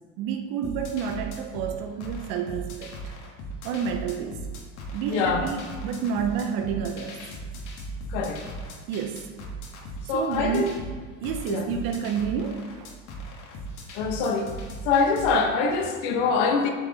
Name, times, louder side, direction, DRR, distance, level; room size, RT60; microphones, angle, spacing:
voice 1, 0.2-3.0 3.6-4.4 4.9-7.2 8.9-9.3 10.1-10.8 11.2-12.9, right 7 dB, 65° right, 5 dB, 0.7 m, -29 dB
sound 1, 0.6-15.4, right 1 dB, 50° left, 1.4 m, -38 dB
voice 2, 5.1-5.4 8.1-8.4 10.1-10.7 11.5-11.6 13.9-14.5 14.8-16.7, left 4 dB, 80° left, 4 dB, 1.1 m, -24 dB
8.0 x 4.5 x 4.0 m, 1.5 s
supercardioid pair, 120°, 38 cm